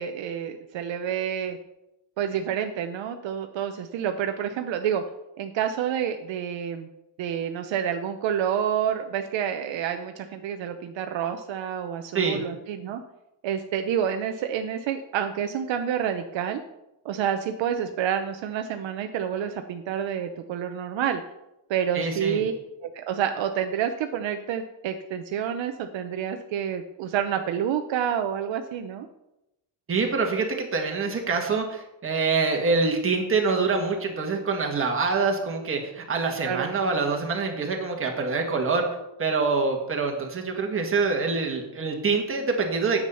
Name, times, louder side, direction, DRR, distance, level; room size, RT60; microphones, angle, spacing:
voice 1, 0.0-1.6 2.2-5.0 5.4-6.9 7.2-13.0 13.4-16.6 17.0-21.2 21.7-22.5 22.8-29.1 36.4-36.7, right 9 dB, 65° right, 6 dB, 0.8 m, -28 dB
voice 2, 21.9-22.4 29.9-38.8 39.2-43.0, right 4 dB, 25° right, 2 dB, 1.7 m, -25 dB
9.3 x 7.5 x 5.5 m, 0.90 s
cardioid pair, 170°, 48 cm